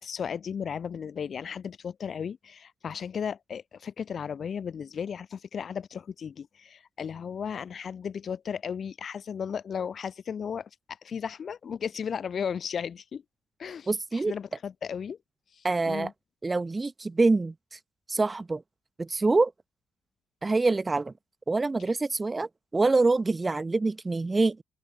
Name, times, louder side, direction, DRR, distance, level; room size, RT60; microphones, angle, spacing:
voice 1, 0.0-10.7 11.0-13.2 13.6-15.2 15.6-16.1, left 7 dB, 50° left, 6.3 m, -35 dB
voice 2, 13.9-14.3 15.6-16.1 16.4-17.8 18.1-18.6 19.0-19.5 20.4-21.1 21.5-24.6, right 3 dB, 25° right, 2.7 m, -25 dB
open air
cardioid pair, 90°, 0 cm